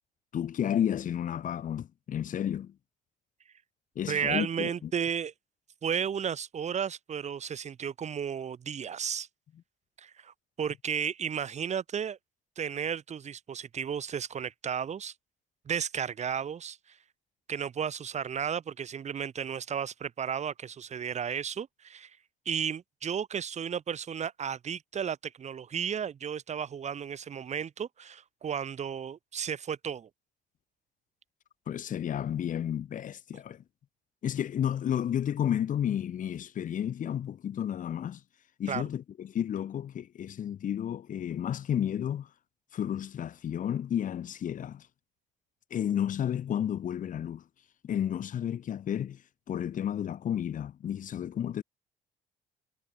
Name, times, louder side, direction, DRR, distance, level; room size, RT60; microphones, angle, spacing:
voice 1, 0.3-2.7 4.0-4.9 31.7-33.6 34.2-38.2 38.6-42.3 42.7-44.9 45.7-47.4 47.8-49.2 49.5-51.6, left 9 dB, 50° left, 2.3 m, -32 dB
voice 2, 4.1-5.3 5.8-9.3 10.0-12.2 12.6-15.1 15.7-16.8 17.5-22.1 22.5-30.1 38.7-38.8, right 8 dB, 40° right, 3.5 m, -33 dB
cardioid pair, 110°, 17 cm